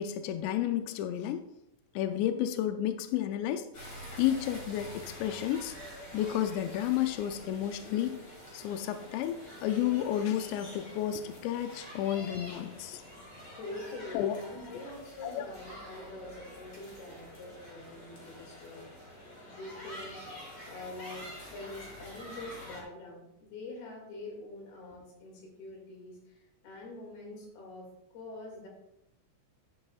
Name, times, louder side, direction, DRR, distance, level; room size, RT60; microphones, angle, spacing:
voice 1, 0.0-1.5 2.0-3.7 4.2-5.7 6.1-8.2 8.5-13.0 14.1-14.4 15.2-15.5, left 11 dB, 85° left, 8 dB, 2.5 m, -31 dB
sound 1, 3.7-22.8, left 1 dB, 40° left, 1.7 m, -47 dB
voice 2, 13.5-18.8 19.1-20.3 20.6-28.7, left 2 dB, 60° left, -1 dB, 3.8 m, -45 dB
10.5 x 9.7 x 2.4 m, 0.84 s
omnidirectional pair, 5.5 m